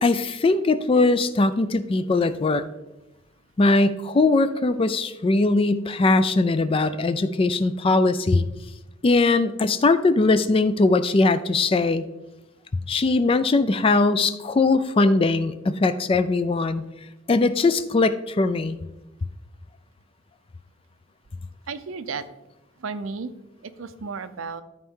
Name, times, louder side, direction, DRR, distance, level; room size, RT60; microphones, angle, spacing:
voice 1, 0.0-2.7 3.6-8.4 9.0-12.0 12.9-16.8 17.3-18.8, left 3 dB, 25° left, 12 dB, 0.3 m, -20 dB
voice 2, 21.7-22.2 22.8-23.3 23.6-24.6, right 4 dB, 75° right, 12 dB, 0.6 m, -33 dB
13.0 x 4.5 x 3.7 m, 1.0 s
head